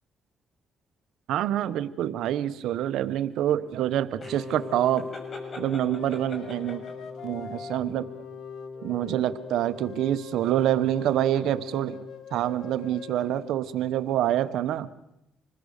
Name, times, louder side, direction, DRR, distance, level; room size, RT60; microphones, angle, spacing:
voice 1, 1.3-5.1 5.6-6.8 7.2-8.1 8.8-12.0 12.3-14.9, right 12 dB, 85° right, 13 dB, 1.0 m, -26 dB
sound 1, 4.2-7.1, left 2 dB, 40° left, 6.3 m, -42 dB
Wind instrument woodwind instrument, 4.2-12.2, left 5 dB, 20° left, 6.0 m, -41 dB
sound 2, 5.4-13.8, left 7 dB, 75° left, 1.8 m, -45 dB
26.5 x 20.5 x 6.6 m, 0.91 s
cardioid pair, 90°, 0 cm